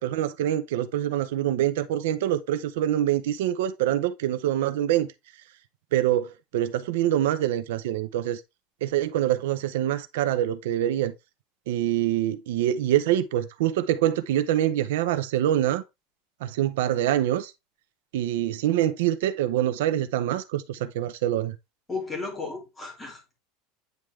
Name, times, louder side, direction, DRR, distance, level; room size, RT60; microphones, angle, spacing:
voice 1, 0.0-5.1 5.9-8.4 8.8-11.1 11.7-15.8 16.4-17.5 18.1-21.6, right 12 dB, 85° right, 0.6 m, -25 dB
voice 2, 21.9-23.4, left 4 dB, 10° left, 2.1 m, -34 dB
9.1 x 3.6 x 3.2 m
supercardioid pair, 180°, 0 cm